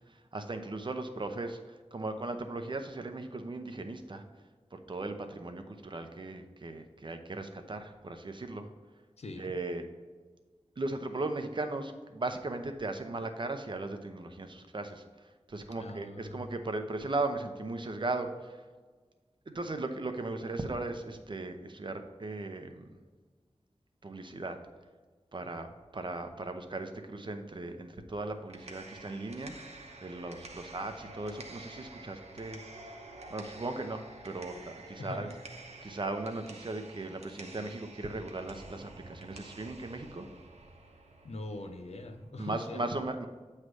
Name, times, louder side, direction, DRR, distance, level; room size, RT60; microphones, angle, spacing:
voice 1, 0.1-4.2 4.7-8.7 9.4-9.8 10.8-18.6 19.5-23.0 24.0-24.6 25.3-25.7 25.9-29.5 30.0-32.6 33.3-35.3 35.8-40.3 42.4-43.3, right 2 dB, 45° right, 6 dB, 0.7 m, -37 dB
voice 2, 9.2-9.5 15.8-16.6 35.0-35.4 41.2-42.9, left 2 dB, 75° left, 6 dB, 0.7 m, -42 dB
sound 1, 28.3-42.3, right 2 dB, 80° right, 0.8 m, -50 dB
7.8 x 3.2 x 6.2 m, 1.4 s
wide cardioid pair, 65°, 11 cm